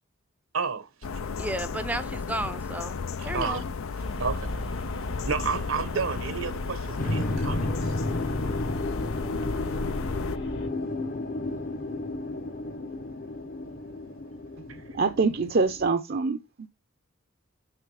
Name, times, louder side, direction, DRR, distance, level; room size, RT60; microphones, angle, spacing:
voice 1, 0.5-0.9 3.2-3.6 4.1-8.0, right 5 dB, 75° right, 1.0 m, -32 dB
sound 1, 1.0-10.4, left 5 dB, 85° left, 0.6 m, -34 dB
voice 2, 1.4-3.0 3.2-3.7, right 1 dB, 5° right, 0.5 m, -33 dB
sound 2, 4.0-10.7, equal, 60° left, 1.7 m, -37 dB
sound 3, 7.0-15.9, left 2 dB, 40° left, 0.8 m, -32 dB
voice 3, 14.9-16.4, right 4 dB, 50° right, 0.6 m, -24 dB
6.8 x 5.8 x 4.8 m
head